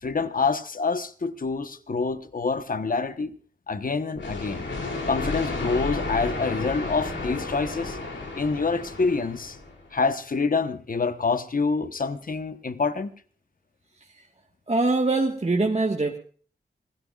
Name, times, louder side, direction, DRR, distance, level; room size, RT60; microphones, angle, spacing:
voice 1, 0.0-3.4 3.7-4.6 5.1-8.0 8.3-9.6 9.9-13.1, left 4 dB, 50° left, 1.1 m, -26 dB
sound 1, 4.1-9.9, left 3 dB, 90° left, 2.9 m, -32 dB
voice 2, 14.7-16.2, right 3 dB, 35° right, 1.5 m, -23 dB
26.0 x 16.5 x 2.4 m
cardioid pair, 50°, 18 cm